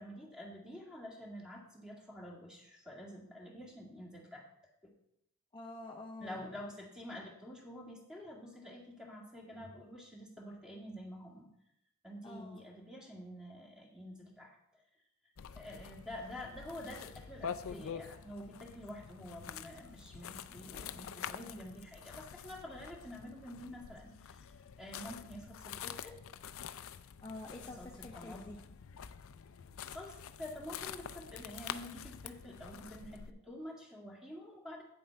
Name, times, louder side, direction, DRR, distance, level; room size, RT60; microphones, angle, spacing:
voice 1, 0.0-4.5 4.8-4.9 6.2-11.5 12.0-14.6 15.6-24.4 24.8-26.2 27.8-28.6 29.9-34.8, left 1 dB, 5° right, -2 dB, 2.0 m, -48 dB
voice 2, 5.5-6.4 12.2-12.6 27.2-28.6, left 2 dB, 20° left, 0 dB, 0.5 m, -47 dB
sound 1, 15.4-33.3, left 8 dB, 65° left, 0.5 m, -47 dB
8.7 x 7.5 x 4.6 m, 0.80 s
head